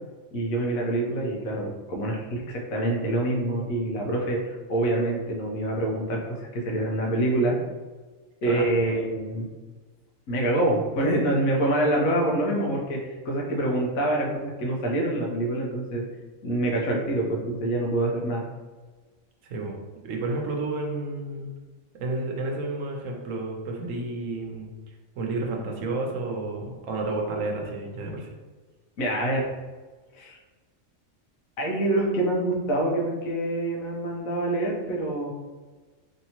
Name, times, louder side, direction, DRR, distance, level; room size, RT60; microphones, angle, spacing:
voice 1, 0.3-7.6 8.4-9.5 10.3-16.0 16.4-18.4 29.0-29.4 30.1-30.4 31.6-35.3, right 1 dB, 85° left, -2 dB, 1.2 m, -26 dB
voice 2, 8.4-8.8 19.4-19.8 20.0-21.5 22.0-24.7 25.2-28.3, right 2 dB, 75° right, 0 dB, 1.0 m, -31 dB
3.2 x 2.8 x 2.8 m, 1.3 s
omnidirectional pair, 1.4 m